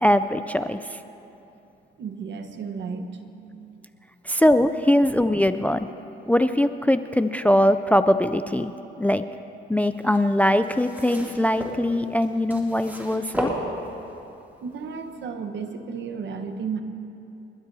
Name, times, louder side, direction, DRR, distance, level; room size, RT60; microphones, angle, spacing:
voice 1, 0.0-1.0 4.2-5.9 6.3-8.7 9.0-9.2 9.7-13.5, left 1 dB, 5° left, 11 dB, 0.4 m, -21 dB
voice 2, 2.0-3.8 14.6-16.8, right 5 dB, 65° right, 7 dB, 1.2 m, -33 dB
sound 1, 10.0-14.2 15.0-15.1, equal, 10° right, 2.7 m, -34 dB
29.5 x 12.5 x 2.8 m, 2.8 s
cardioid pair, 90°, 20 cm